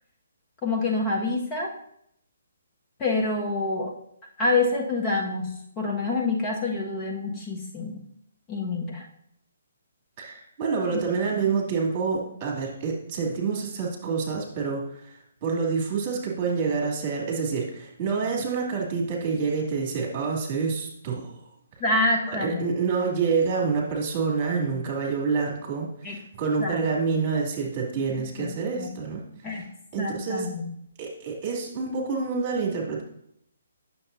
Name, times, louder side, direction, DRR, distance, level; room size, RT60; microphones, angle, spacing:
voice 1, 0.6-1.7 3.0-3.9 4.4-8.0 8.5-9.0 10.9-11.0 11.4-11.6 21.8-22.8 26.0-26.2 26.6-26.8 27.1-27.2 28.4-28.9 29.4-29.6 30.0-30.6, left 3 dB, 25° left, -1 dB, 1.5 m, -27 dB
voice 2, 10.2-15.1 15.4-21.3 22.3-29.2 29.5-29.6 29.9-30.5 31.0-33.0, right 5 dB, 30° right, -1 dB, 2.5 m, -27 dB
9.1 x 6.8 x 2.7 m, 0.73 s
figure-of-eight pair, 135°, 0 cm